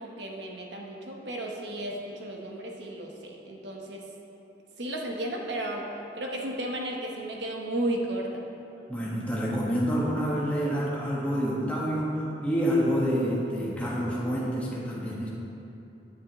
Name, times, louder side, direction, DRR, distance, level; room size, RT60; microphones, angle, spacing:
voice 1, 0.0-4.0 4.8-5.9 6.1-8.4, right 1 dB, 85° right, 0 dB, 1.0 m, -34 dB
voice 2, 8.9-15.3, equal, 10° left, -7 dB, 1.5 m, -28 dB
9.5 x 9.3 x 3.1 m, 2.8 s
head